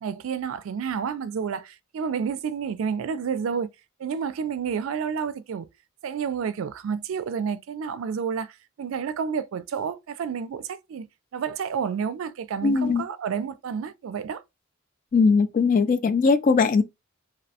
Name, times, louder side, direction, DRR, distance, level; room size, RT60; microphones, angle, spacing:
voice 1, 0.0-3.7 4.0-5.7 6.0-11.1 11.3-14.4, right 6 dB, 70° right, 0.3 m, -30 dB
voice 2, 12.6-13.0 15.1-16.8, left 4 dB, 40° left, 0.3 m, -20 dB
2.6 x 2.1 x 2.7 m
head